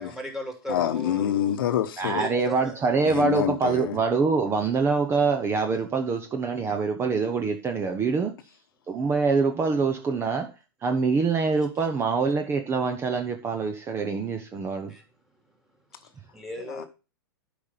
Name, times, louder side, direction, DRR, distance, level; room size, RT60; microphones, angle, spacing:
voice 1, 0.0-1.5 2.0-2.8 14.9-15.0 15.5-15.6 15.9-16.9, equal, 5° right, 3.0 m, -37 dB
voice 2, 0.7-2.3 3.1-4.0 16.7-16.8, left 11 dB, 65° left, 1.0 m, -26 dB
voice 3, 2.0-8.3 8.9-10.5 10.8-14.9, right 4 dB, 20° right, 1.0 m, -25 dB
8.6 x 5.2 x 5.8 m
hypercardioid pair, 125°, 12 cm